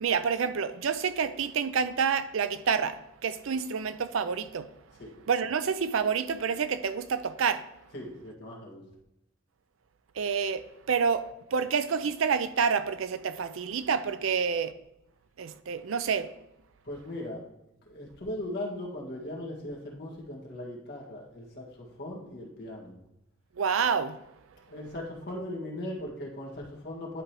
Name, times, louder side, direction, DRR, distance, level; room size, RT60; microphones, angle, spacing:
voice 1, 0.0-4.7 5.3-7.6 10.2-14.7 15.4-16.3 23.6-24.2, right 6 dB, 75° right, 0.5 m, -28 dB
voice 2, 7.9-8.8 16.8-17.5 17.9-23.0 24.7-27.2, left 1 dB, 55° left, 1.9 m, -38 dB
11.0 x 4.9 x 3.0 m
head